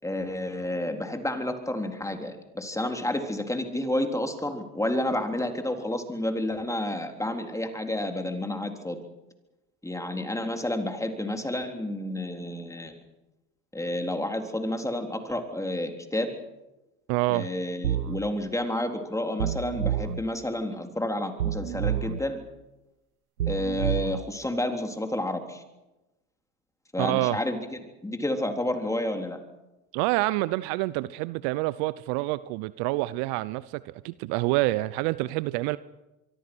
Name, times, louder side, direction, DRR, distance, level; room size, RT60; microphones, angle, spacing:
voice 1, 0.0-9.0 9.8-12.9 13.7-16.4 17.3-22.4 23.5-25.6 26.9-29.4, left 1 dB, 5° left, 5 dB, 3.7 m, -30 dB
voice 2, 17.1-17.5 27.0-27.4 29.9-35.8, right 20 dB, 60° right, 18 dB, 0.9 m, -27 dB
sound 1, 17.8-18.2 19.4-20.2 21.4-22.2 23.4-24.2, right 10 dB, 85° right, 1.1 m, -28 dB
25.0 x 24.0 x 6.2 m, 1.0 s
hypercardioid pair, 80°, 43 cm